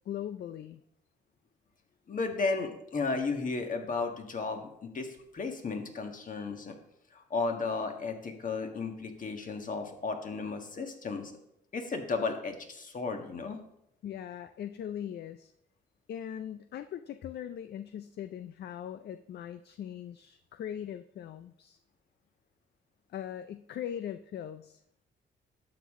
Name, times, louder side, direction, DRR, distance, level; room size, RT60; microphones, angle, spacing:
voice 1, 0.1-0.8 14.0-15.5 16.1-21.8 23.1-25.0, left 10 dB, 55° left, 11 dB, 0.5 m, -40 dB
voice 2, 2.1-6.7 7.1-11.3 11.7-13.6, left 4 dB, 40° left, 4 dB, 1.6 m, -34 dB
11.5 x 7.3 x 3.7 m, 0.76 s
cardioid pair, 90°, 20 cm